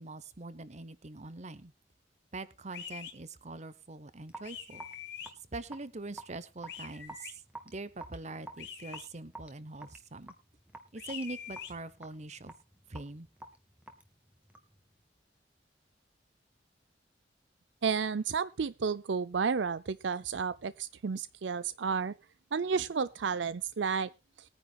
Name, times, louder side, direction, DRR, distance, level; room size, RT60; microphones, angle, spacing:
voice 1, 0.0-1.7 2.3-4.9 5.5-10.3 10.9-12.5 12.9-13.3, right 2 dB, 40° right, 1.0 m, -43 dB
sound 1, 2.7-3.1 4.4-5.3 6.7-7.3 8.6-9.1 11.0-11.7, left 9 dB, 60° left, 2.6 m, -44 dB
Raindrop / Drip, 4.3-14.8, right 2 dB, 5° right, 1.9 m, -50 dB
voice 2, 17.8-22.1 22.5-24.1, right 5 dB, 75° right, 0.5 m, -31 dB
21.0 x 9.9 x 2.4 m
head